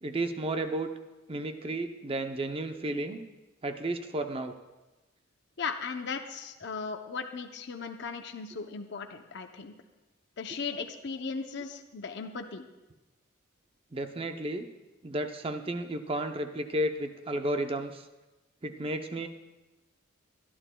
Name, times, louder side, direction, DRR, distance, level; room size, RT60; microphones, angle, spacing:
voice 1, 0.0-0.9 1.3-3.2 3.6-4.5 13.9-14.7 15.0-18.0 18.6-19.3, right 1 dB, 25° right, 7 dB, 0.6 m, -32 dB
voice 2, 5.6-9.7 10.4-12.7, left 5 dB, 55° left, 6 dB, 0.6 m, -37 dB
23.0 x 11.0 x 2.2 m, 1.1 s
head